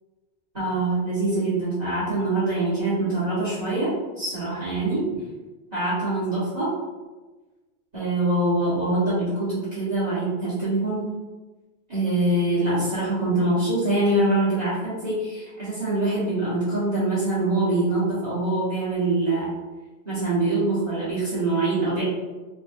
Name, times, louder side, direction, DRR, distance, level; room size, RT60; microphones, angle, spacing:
voice 1, 0.5-5.0 5.7-6.7 7.9-11.1 11.9-19.5 20.0-22.0, right 2 dB, 35° right, -12 dB, 1.5 m, -24 dB
3.6 x 3.2 x 2.5 m, 1.2 s
omnidirectional pair, 1.2 m